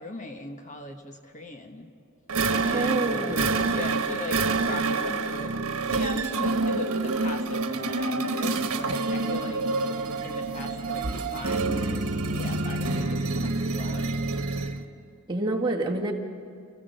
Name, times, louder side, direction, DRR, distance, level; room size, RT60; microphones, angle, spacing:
voice 1, 0.0-1.9 2.6-5.5 5.8-9.6 10.2-11.1 11.3-12.1 12.4-14.1, left 2 dB, 35° left, 5 dB, 1.2 m, -39 dB
sound 1, 2.3-14.8, right 3 dB, 75° right, 1.2 m, -27 dB
voice 2, 2.6-3.5 15.3-16.1, right 2 dB, 20° right, -1 dB, 1.8 m, -28 dB
28.5 x 15.5 x 6.6 m, 2.4 s
head